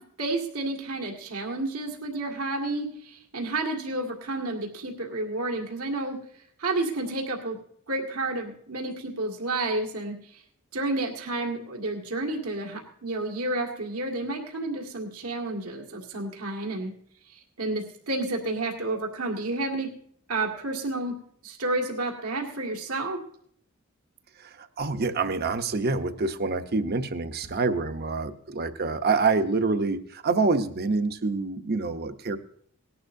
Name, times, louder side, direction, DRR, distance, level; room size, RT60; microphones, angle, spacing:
voice 1, 0.2-6.2 6.6-7.6 7.9-10.1 10.7-16.9 17.3-19.9 20.3-21.1 21.4-23.2, right 2 dB, 90° right, 0 dB, 2.0 m, -30 dB
voice 2, 24.4-32.4, right 3 dB, 45° right, 9 dB, 0.8 m, -26 dB
18.5 x 11.0 x 2.6 m, 0.64 s
head